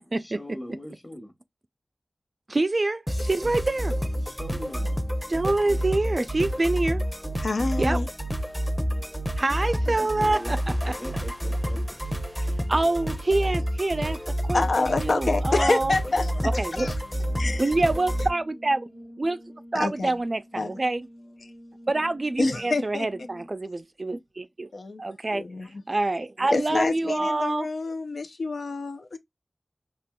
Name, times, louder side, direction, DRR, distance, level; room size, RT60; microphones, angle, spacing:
voice 1, 0.1-1.3 4.2-5.1 9.8-10.6 10.9-12.1, left 1 dB, 25° left, 1.0 m, -41 dB
voice 2, 2.5-4.0 5.3-7.0 7.8-8.0 9.4-10.6 10.8-10.9 12.7-15.9 16.4-16.9 17.6-18.9 19.2-19.4 19.7-21.1 21.9-24.7 25.0-25.4 25.9-27.7, right 2 dB, 45° right, 0.4 m, -26 dB
sound 1, 3.1-18.3, equal, 5° left, 0.7 m, -29 dB
voice 3, 7.4-8.1 14.5-16.9 17.4-17.7 19.7-20.1 20.6-20.8 22.4-23.1 24.7-25.0 25.3-25.7 26.5-29.2, left 3 dB, 85° left, 0.6 m, -27 dB
Brass instrument, 17.3-23.7, equal, 60° left, 1.1 m, -47 dB
4.2 x 2.9 x 2.2 m
wide cardioid pair, 65°, 0 cm